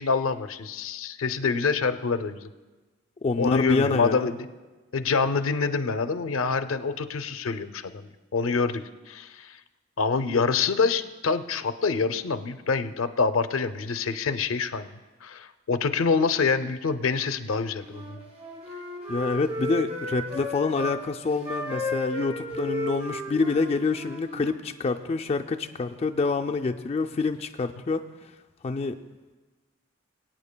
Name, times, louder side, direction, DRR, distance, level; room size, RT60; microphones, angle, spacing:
voice 1, 0.0-2.5 3.4-4.5 4.9-8.8 9.1-9.6 10.0-14.9 15.2-18.2, left 4 dB, 90° left, 10 dB, 0.5 m, -26 dB
voice 2, 3.2-4.3 19.1-28.0 28.6-29.0, left 4 dB, 30° left, 4 dB, 0.3 m, -27 dB
Wind instrument woodwind instrument, 17.8-21.0 21.4-24.6, left 1 dB, 30° right, 3.0 m, -34 dB
22.5 x 8.9 x 2.2 m, 1.2 s
head